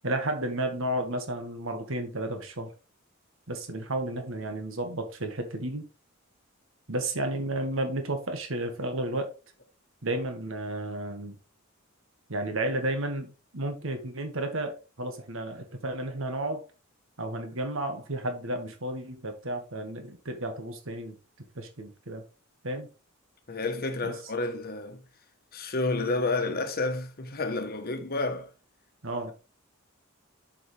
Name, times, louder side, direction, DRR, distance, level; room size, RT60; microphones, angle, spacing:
voice 1, 0.0-2.7 3.5-5.9 6.9-9.3 10.0-11.4 12.3-16.6 17.2-21.2 21.5-22.2 22.6-22.9 24.0-24.1 29.0-29.3, right 1 dB, 65° right, 1.6 m, -32 dB
voice 2, 23.5-25.0 25.5-28.5, left 3 dB, 45° left, 1.1 m, -30 dB
7.1 x 6.0 x 3.4 m
head